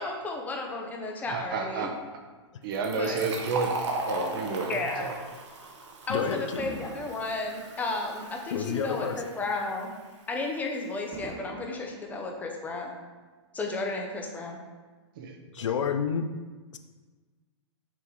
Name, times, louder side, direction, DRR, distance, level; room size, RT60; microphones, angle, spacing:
voice 1, 0.0-1.9 3.0-3.3 4.7-5.1 6.1-9.9 10.3-12.9 13.5-14.6, left 3 dB, 10° left, 1 dB, 0.6 m, -33 dB
Fireworks, 1.3-3.8 4.5-4.7 6.6-9.1 9.5-9.6 11.1-13.0 13.7-13.8, right 2 dB, 25° right, 0.9 m, -47 dB
voice 2, 1.3-2.0 2.6-5.2 15.2-15.7, right 4 dB, 50° right, 4 dB, 0.8 m, -31 dB
Fill (with liquid), 2.7-10.1, right 2 dB, 75° right, 1.2 m, -38 dB
voice 3, 6.1-6.6 8.5-9.3 15.5-16.3, left 7 dB, 80° left, 8 dB, 0.6 m, -29 dB
6.0 x 3.6 x 4.6 m, 1.4 s
hypercardioid pair, 145°, 15 cm